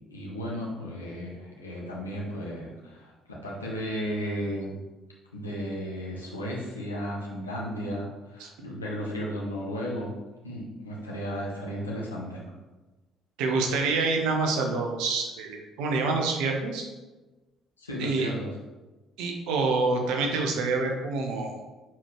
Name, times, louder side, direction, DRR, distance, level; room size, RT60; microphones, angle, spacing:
voice 1, 0.1-4.7 5.3-10.1 10.4-12.4 17.8-18.5, equal, 90° left, -4 dB, 1.2 m, -34 dB
voice 2, 13.4-16.8 18.0-18.3 19.2-21.6, right 3 dB, 65° right, 2 dB, 1.0 m, -27 dB
7.6 x 4.6 x 3.1 m, 1.2 s
figure-of-eight pair, 50°, 0 cm